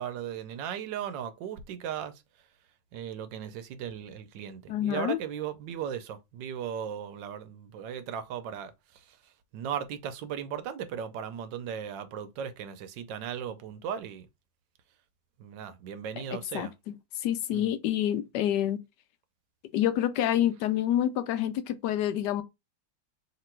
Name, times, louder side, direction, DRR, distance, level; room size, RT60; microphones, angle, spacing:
voice 1, 0.0-2.2 2.9-9.2 9.5-14.3 15.4-16.7 17.5-17.7, right 8 dB, 85° right, 1.4 m, -37 dB
voice 2, 4.7-5.2 16.3-16.9 17.2-18.8 19.7-22.4, left 11 dB, 75° left, 1.1 m, -28 dB
3.3 x 2.9 x 4.4 m
omnidirectional pair, 1.9 m